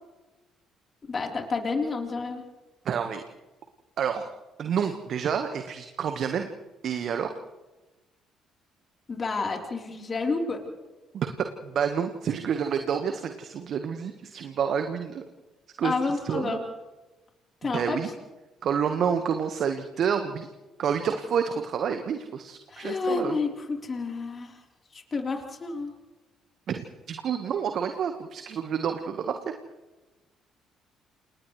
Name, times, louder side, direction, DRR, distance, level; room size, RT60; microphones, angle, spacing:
voice 1, 1.1-2.4 9.1-10.6 15.8-16.6 17.6-18.0 22.7-24.6 24.9-25.9, left 4 dB, 35° left, 1 dB, 3.8 m, -30 dB
voice 2, 2.8-3.2 4.0-4.2 4.6-6.5 6.8-7.3 11.1-11.3 11.6-15.2 15.8-15.9 16.2-16.6 17.7-18.1 18.6-20.5 20.8-23.4 26.7-26.8 27.1-29.4, right 7 dB, 55° right, 7 dB, 1.4 m, -28 dB
30.0 x 28.0 x 3.3 m, 1.2 s
hypercardioid pair, 50°, 0 cm